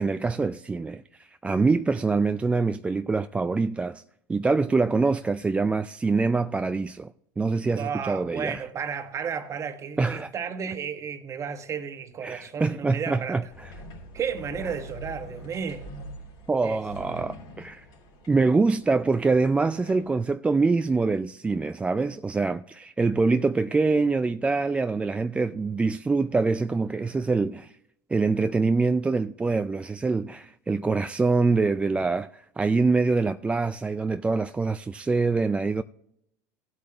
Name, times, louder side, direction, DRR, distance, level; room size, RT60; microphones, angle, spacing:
voice 1, 0.0-4.0 4.3-8.6 10.0-10.3 12.2-13.7 16.5-17.9 18.3-27.7 28.1-35.8, right 3 dB, 15° right, 0.3 m, -25 dB
voice 2, 7.8-13.4 14.1-15.9 16.6-16.8, right 7 dB, 35° right, 1.3 m, -33 dB
sound 1, 13.5-20.3, equal, 60° left, 3.3 m, -44 dB
16.5 x 8.4 x 2.9 m
hypercardioid pair, 95°, 9 cm